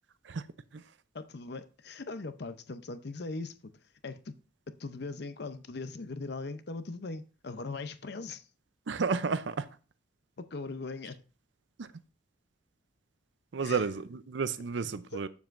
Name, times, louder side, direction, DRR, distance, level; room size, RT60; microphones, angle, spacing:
voice 1, 1.1-3.5 4.0-4.3 4.8-8.4 10.5-11.2 13.6-13.8 14.8-15.2, left 3 dB, 60° left, 0.7 m, -40 dB
voice 2, 8.9-9.7 11.8-11.9 13.5-15.3, right 5 dB, 70° right, 0.5 m, -31 dB
8.0 x 7.2 x 2.6 m
head